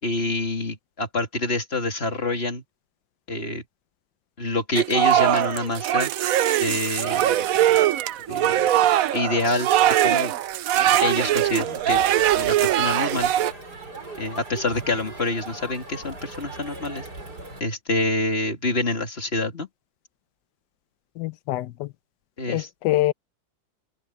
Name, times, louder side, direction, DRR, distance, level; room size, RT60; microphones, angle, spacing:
voice 1, 0.0-2.6 3.3-3.6 4.4-6.1 6.6-7.8 8.3-8.7 9.1-9.7 10.0-10.3 11.0-12.0 12.3-13.3 14.2-17.1 17.6-19.7 22.4-22.7, left 2 dB, 30° left, 3.3 m, -27 dB
sound 1, 4.7-13.5, right 12 dB, 70° right, 0.8 m, -21 dB
Crowd, 10.8-17.6, right 2 dB, 55° right, 6.3 m, -39 dB
voice 2, 21.2-21.9 22.5-23.1, left 16 dB, 70° left, 1.2 m, -25 dB
omnidirectional pair, 2.1 m